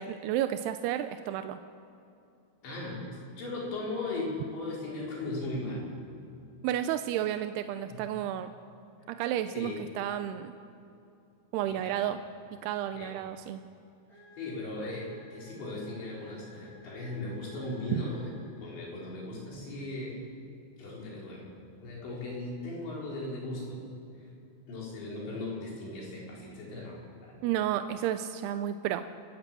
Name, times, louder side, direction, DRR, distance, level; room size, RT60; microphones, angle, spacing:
voice 1, 0.0-1.6 6.6-8.5 9.1-10.6 11.5-12.2 12.6-13.6 17.9-18.0 27.4-29.0, right 11 dB, 80° right, 9 dB, 2.4 m, -31 dB
voice 2, 2.6-5.9 7.9-8.0 9.5-9.8 11.7-12.0 12.9-13.1 14.4-18.3 18.6-20.2 20.8-21.5 21.8-23.8 24.7-27.4, left 2 dB, 70° left, -4 dB, 7.1 m, -38 dB
sound 1, 14.1-19.0, left 1 dB, 10° left, 6.9 m, -54 dB
29.5 x 15.0 x 7.7 m, 2.6 s
omnidirectional pair, 5.3 m